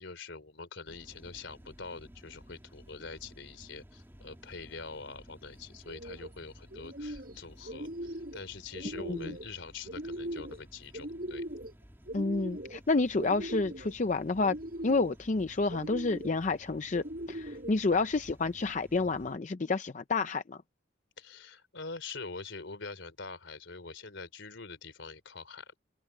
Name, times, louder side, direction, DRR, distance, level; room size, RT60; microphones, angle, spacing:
voice 1, 0.0-11.4 21.2-25.8, left 4 dB, 70° left, 3.4 m, -45 dB
sound 1, 0.9-19.4, equal, 10° right, 2.6 m, -55 dB
sound 2, 5.8-6.3 6.7-7.4 7.6-8.4 8.7-9.5 9.9-10.6 10.9-11.7 12.1-12.8 13.2-13.9 14.4-15.2 15.7-16.4 16.9-17.7, right 1 dB, 50° right, 6.4 m, -40 dB
voice 2, 12.1-14.6 14.8-20.6, left 3 dB, 40° left, 0.5 m, -29 dB
head